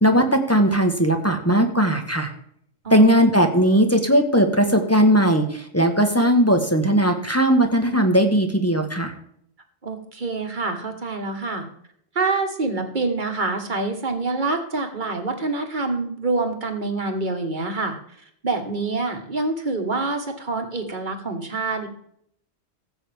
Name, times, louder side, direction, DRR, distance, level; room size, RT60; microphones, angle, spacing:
voice 1, 0.0-2.3 2.9-9.1, equal, 10° left, 5 dB, 1.1 m, -18 dB
voice 2, 2.8-3.2 9.8-11.6 12.1-18.0 18.4-21.9, right 3 dB, 40° right, 5 dB, 1.6 m, -26 dB
15.5 x 7.9 x 3.5 m, 0.67 s
omnidirectional pair, 1.4 m